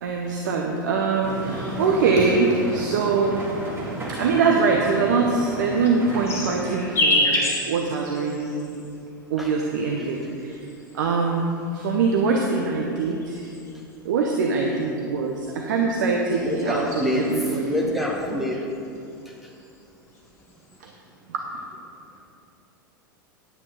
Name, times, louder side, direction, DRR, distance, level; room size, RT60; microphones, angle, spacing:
voice 1, 0.0-3.5 4.1-8.8 9.3-10.6 10.9-13.5 14.0-17.9 20.8-20.9 21.3-21.4, right 4 dB, 60° right, 1 dB, 0.9 m, -23 dB
sound 1, 1.2-6.7, right 1 dB, 20° right, 2.1 m, -33 dB
sound 2, 5.5-9.0 9.9-11.2 12.1-14.0 15.4-17.5 17.9-18.4 18.7-19.8 20.1-20.8, left 1 dB, 25° left, 2.0 m, -29 dB
voice 2, 16.4-17.3 17.6-18.6, left 1 dB, ahead, -2 dB, 1.0 m, -26 dB
9.9 x 8.8 x 4.3 m, 2.6 s
figure-of-eight pair, 90°, 11 cm